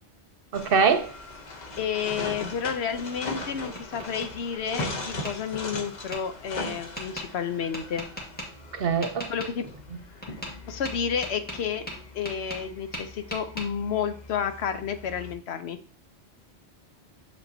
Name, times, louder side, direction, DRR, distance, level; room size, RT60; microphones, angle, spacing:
sound 1, 0.5-15.3, left 2 dB, 40° left, 0.9 m, -39 dB
voice 1, 0.5-1.1 8.7-9.3, right 6 dB, 60° right, 0.9 m, -23 dB
voice 2, 1.8-8.1 9.3-9.7 10.7-11.8 12.1-15.8, left 7 dB, 70° left, 0.9 m, -31 dB
Tap, 3.3-4.3 4.8-5.3 6.1-6.2 7.0-7.3 7.7-8.5 9.0-9.5 10.2-10.6 10.9-12.7 12.9-13.7, equal, 10° left, 1.6 m, -37 dB
7.2 x 5.4 x 2.7 m
omnidirectional pair, 1.2 m